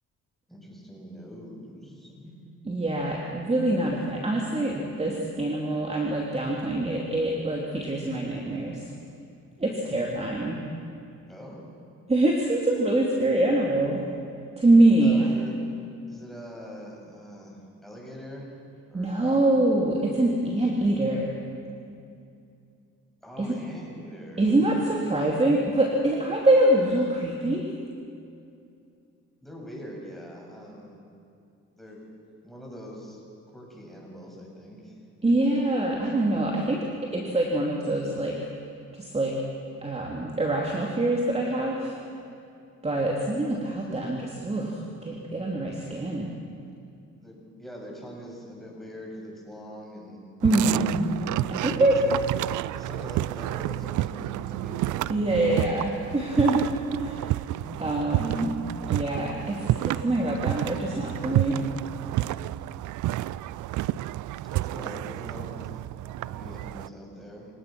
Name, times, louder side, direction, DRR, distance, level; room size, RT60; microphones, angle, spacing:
voice 1, 0.5-2.4 11.3-11.6 15.0-15.5 16.1-18.5 18.9-19.4 23.2-25.0 29.4-31.0 31.8-32.0 32.4-33.2 33.5-35.0 47.2-50.3 52.0-52.3 52.7-55.1 57.6-58.0 64.5-65.7 66.2-67.5, equal, ahead, -2 dB, 7.4 m, -43 dB
voice 2, 2.6-8.8 9.6-10.6 12.1-14.1 14.6-15.4 18.9-21.4 23.4-23.5 24.4-27.7 35.2-36.9 37.1-38.4 38.9-39.4 39.8-41.9 42.8-46.3 50.4-51.1 51.5-52.0 55.1-56.7 56.9-57.2 57.8-58.6 58.9-61.6, right 2 dB, 20° right, -2 dB, 2.8 m, -24 dB
sound 1, 50.4-66.9, right 15 dB, 75° right, 0.5 m, -30 dB
28.5 x 18.0 x 6.1 m, 2.5 s
cardioid pair, 90°, 30 cm